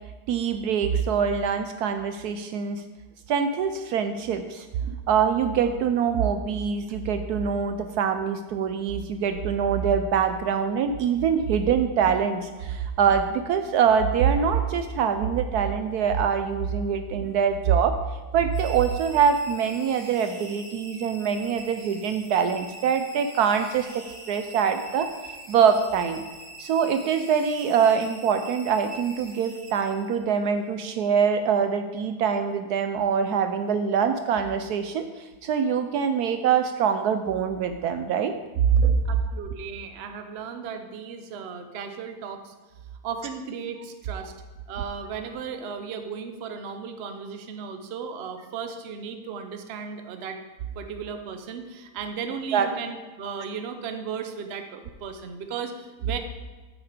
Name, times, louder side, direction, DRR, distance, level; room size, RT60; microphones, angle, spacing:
voice 1, 0.3-2.8 3.3-18.0 18.3-25.1 25.5-26.2 26.6-38.3 38.7-39.0 52.5-52.7, right 7 dB, 70° right, 8 dB, 1.1 m, -24 dB
sound 1, 18.5-30.4, right 2 dB, 35° right, 2.0 m, -44 dB
voice 2, 39.0-42.5 43.0-44.3 44.7-50.4 50.7-56.2, right 6 dB, 50° right, 7 dB, 0.8 m, -35 dB
9.1 x 7.2 x 5.0 m, 1.3 s
omnidirectional pair, 1.8 m